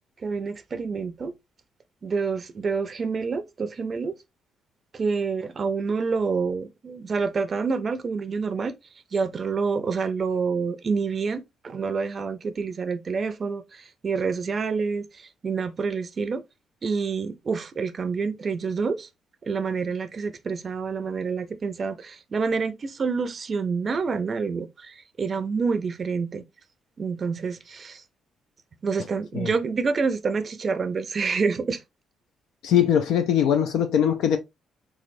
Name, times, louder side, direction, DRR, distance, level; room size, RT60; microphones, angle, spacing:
voice 1, 0.2-1.3 2.0-4.2 4.9-8.7 9.1-16.4 16.8-19.1 19.4-26.4 27.0-28.0 28.8-31.8, right 5 dB, 40° right, 0.5 m, -27 dB
voice 2, 32.6-34.4, left 9 dB, 85° left, 0.4 m, -21 dB
3.7 x 3.1 x 2.6 m
cardioid pair, 90°, 0 cm